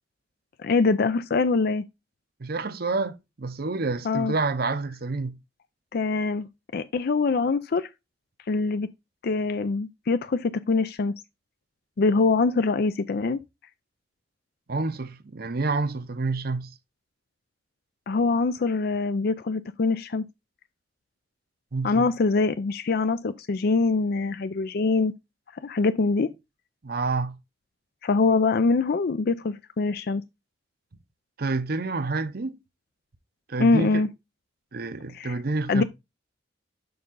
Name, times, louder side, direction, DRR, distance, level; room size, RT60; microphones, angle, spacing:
voice 1, 0.6-1.9 4.0-4.3 5.9-7.9 8.5-8.9 9.2-11.1 12.0-13.4 18.1-20.3 21.8-25.1 25.5-26.3 28.0-30.2 33.6-34.1 35.1-35.4 35.7-35.8, left 4 dB, 60° left, 0.5 m, -24 dB
voice 2, 2.4-5.4 14.7-16.7 21.7-22.1 26.8-27.3 31.4-32.6 33.5-34.0 34.7-35.8, right 3 dB, 60° right, 0.8 m, -28 dB
6.8 x 5.2 x 3.7 m
head